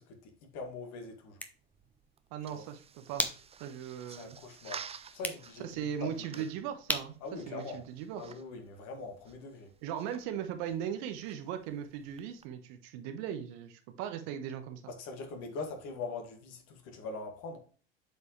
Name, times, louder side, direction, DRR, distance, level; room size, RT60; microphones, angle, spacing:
voice 1, 0.0-1.4 2.5-2.6 4.1-4.9 5.1-6.4 7.2-7.8 8.2-9.7 14.9-17.6, left 3 dB, 55° left, 2.0 m, -42 dB
sound 1, 1.1-8.5, left 1 dB, 5° left, 1.1 m, -42 dB
sound 2, 1.5-12.5, right 6 dB, 20° right, 0.5 m, -52 dB
voice 2, 2.3-3.2 3.6-4.4 5.6-7.2 7.5-8.2 9.8-14.9, right 9 dB, 60° right, 1.3 m, -38 dB
8.1 x 4.7 x 3.2 m
hypercardioid pair, 75°, 31 cm